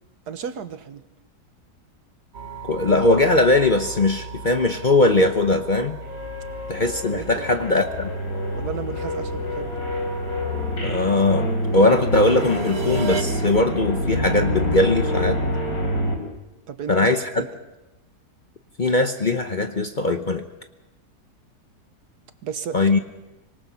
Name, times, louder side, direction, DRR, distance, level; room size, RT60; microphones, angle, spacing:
voice 1, 0.3-1.0 7.1-7.5 8.6-9.8 16.7-17.1 17.4-17.5 22.4-22.8, right 7 dB, 70° right, 10 dB, 1.6 m, -33 dB
sound 1, 2.3-13.2, right 5 dB, 40° right, 1.5 m, -37 dB
voice 2, 2.7-6.0 6.7-8.1 10.8-15.4 16.9-17.4 18.8-20.4 22.7-23.0, left 2 dB, 35° left, 6 dB, 0.9 m, -20 dB
sound 2, 6.0-16.2, equal, 60° left, 4.4 m, -27 dB
25.5 x 19.0 x 5.7 m, 1.0 s
omnidirectional pair, 1.8 m